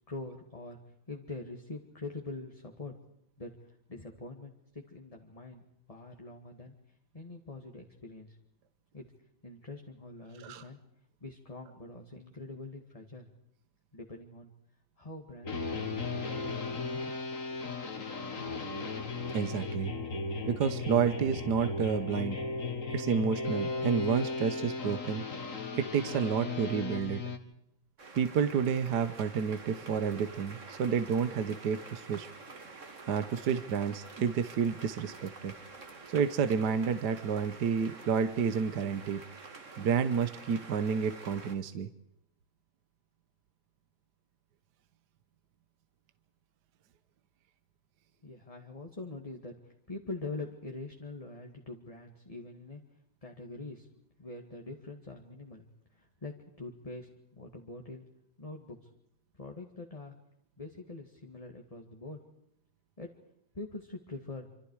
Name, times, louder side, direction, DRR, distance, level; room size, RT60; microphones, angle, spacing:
voice 1, 0.1-0.8 1.1-2.9 3.4-8.4 8.9-9.1 9.4-10.8 11.2-13.3 13.9-14.5 15.0-16.1 16.5-17.6 48.2-52.8 53.2-53.9 54.2-55.7 55.9-58.0 58.4-58.9 59.3-60.1 60.6-62.2 63.0-63.1 63.5-64.5, left 3 dB, 20° left, 2 dB, 2.0 m, -44 dB
sound 1, 15.4-27.4, left 3 dB, 45° left, 2.2 m, -36 dB
voice 2, 19.3-19.9 20.5-22.4 22.9-25.2 25.7-27.2 28.1-32.3 33.1-35.5 36.1-39.2 39.8-41.9, right 7 dB, 60° right, 11 dB, 1.6 m, -30 dB
sound 2, 28.0-41.6, right 3 dB, 40° right, 2.3 m, -48 dB
27.0 x 26.5 x 4.8 m, 0.78 s
omnidirectional pair, 2.1 m